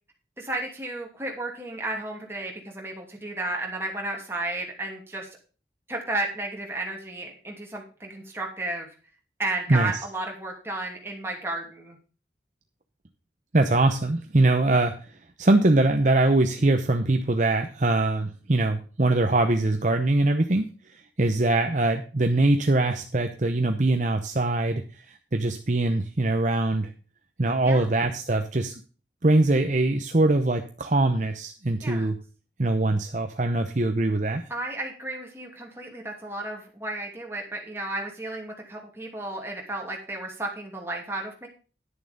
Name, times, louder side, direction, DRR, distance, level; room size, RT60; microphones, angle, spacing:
voice 1, 0.4-5.3 5.9-8.9 9.4-12.0 27.6-27.9 31.8-32.1 34.5-41.5, right 2 dB, 15° right, 0 dB, 2.7 m, -33 dB
voice 2, 13.5-20.7 21.2-26.9 27.4-28.7 29.2-32.2 32.6-34.4, right 2 dB, 45° right, 5 dB, 0.8 m, -22 dB
11.0 x 6.9 x 5.3 m, 0.37 s
head